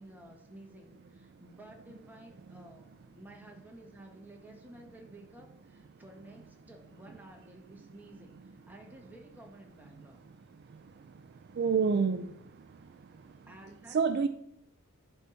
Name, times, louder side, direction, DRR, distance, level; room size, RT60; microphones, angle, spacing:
voice 1, 0.0-10.2 13.5-14.0, right 1 dB, 10° right, 1 dB, 1.2 m, -53 dB
voice 2, 11.6-12.3 13.9-14.3, right 5 dB, 50° right, 11 dB, 0.3 m, -26 dB
10.5 x 4.0 x 4.3 m, 0.78 s
head